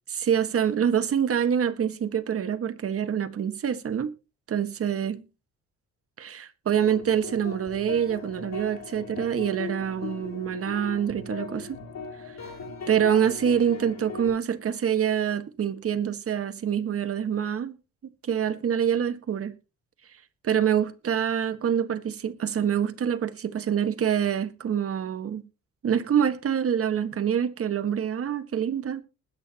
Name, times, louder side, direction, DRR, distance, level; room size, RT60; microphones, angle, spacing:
voice 1, 0.1-4.1 4.5-5.2 6.2-11.8 12.9-17.8 18.3-19.5 20.4-25.4 25.8-29.0, right 8 dB, 50° right, 1.5 m, -26 dB
sound 1, 6.8-14.3, left 4 dB, 60° left, 7.2 m, -39 dB
20.5 x 8.7 x 2.9 m
cardioid pair, 90°, 30 cm